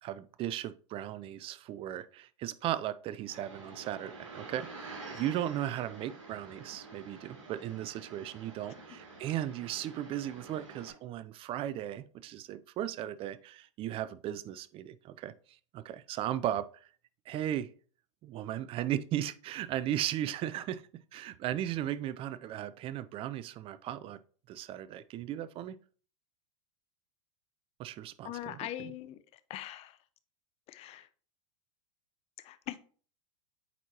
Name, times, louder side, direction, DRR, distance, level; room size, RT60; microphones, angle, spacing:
voice 1, 0.0-15.3 15.7-16.9 17.3-17.7 18.2-20.8 21.1-24.2 24.5-25.8 27.8-28.9, right 12 dB, 35° right, 0.4 m, -36 dB
sound 1, 3.3-10.9, right 3 dB, 80° right, 2.6 m, -48 dB
voice 2, 28.2-29.2 29.5-30.0 30.7-31.1 32.4-32.8, left 13 dB, 40° left, 0.6 m, -41 dB
8.0 x 4.5 x 2.9 m
hypercardioid pair, 100°, 16 cm